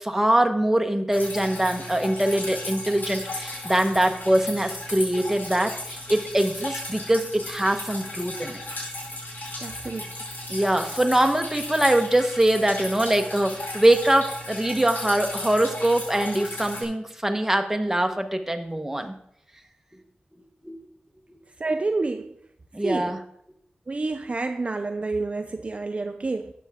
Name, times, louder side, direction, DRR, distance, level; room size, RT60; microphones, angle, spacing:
voice 1, 0.0-8.6 10.5-19.1 20.6-20.8 22.7-23.2, right 1 dB, 10° right, 5 dB, 1.1 m, -23 dB
Drip, 1.1-16.8, left 1 dB, 90° left, 4.8 m, -35 dB
voice 2, 9.6-10.1 21.6-22.4 22.8-23.1 23.9-26.5, right 3 dB, 40° right, 7 dB, 0.5 m, -28 dB
12.5 x 8.5 x 3.7 m, 0.73 s
wide cardioid pair, 110°, 3 cm